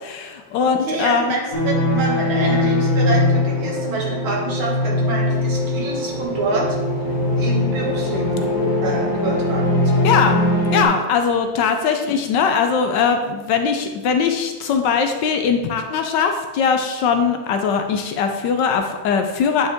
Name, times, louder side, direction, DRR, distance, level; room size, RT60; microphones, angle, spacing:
voice 1, 0.0-1.4 10.0-10.4 10.7-19.7, left 6 dB, 75° left, 6 dB, 1.1 m, -20 dB
voice 2, 0.6-6.7 7.4-8.4 8.8-10.1, right 3 dB, 80° right, -2 dB, 2.3 m, -27 dB
sound 1, 1.5-10.8, left 1 dB, 45° left, 1.6 m, -21 dB
sound 2, 6.1-11.9, left 2 dB, 10° left, 1.4 m, -32 dB
8.8 x 5.2 x 3.5 m, 1.3 s
omnidirectional pair, 2.2 m